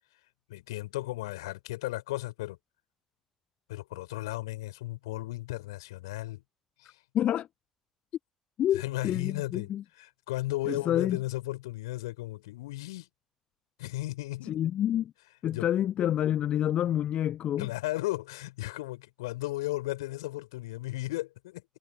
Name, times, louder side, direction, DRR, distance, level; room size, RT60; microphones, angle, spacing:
voice 1, 0.5-2.6 3.7-6.4 6.8-7.0 8.7-9.7 10.0-13.1 13.8-14.6 15.5-15.7 17.6-21.6, left 18 dB, 70° left, 4.8 m, -35 dB
voice 2, 7.1-7.5 8.6-9.8 10.7-11.2 14.4-15.1 15.4-17.7, left 11 dB, 50° left, 0.8 m, -28 dB
figure-of-eight pair, 50°, 3 cm